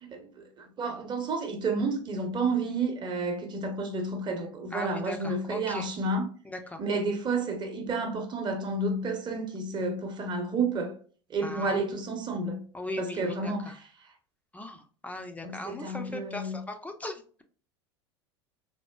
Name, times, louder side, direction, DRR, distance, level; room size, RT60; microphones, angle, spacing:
voice 1, 0.0-6.3 6.8-10.9 11.3-12.6 13.0-13.9 15.4-16.6, right 3 dB, 30° right, 0.9 m, -31 dB
voice 2, 4.7-5.9 6.4-6.8 11.4-11.8 12.7-13.7 14.5-17.4, left 1 dB, 10° left, 0.5 m, -39 dB
4.3 x 2.1 x 2.2 m
hypercardioid pair, 80°, 14 cm